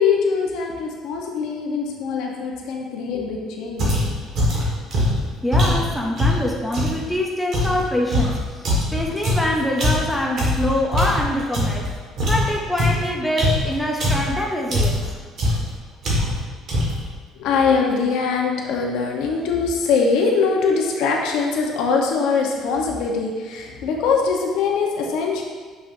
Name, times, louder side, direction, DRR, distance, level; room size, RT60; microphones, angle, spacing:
voice 1, 0.0-4.0 17.3-25.4, left 5 dB, 70° left, 0 dB, 0.9 m, -22 dB
sound 1, 3.8-7.0 7.5-11.9 12.2-14.4 14.7-15.1 15.4-15.7 16.0-16.4 16.7-17.1, left 1 dB, 40° right, 1.6 m, -21 dB
voice 2, 5.4-8.6 8.9-11.9 12.3-15.0, left 1 dB, ahead, -2 dB, 0.5 m, -24 dB
6.7 x 6.0 x 2.6 m, 1.5 s
cardioid pair, 175°, 0 cm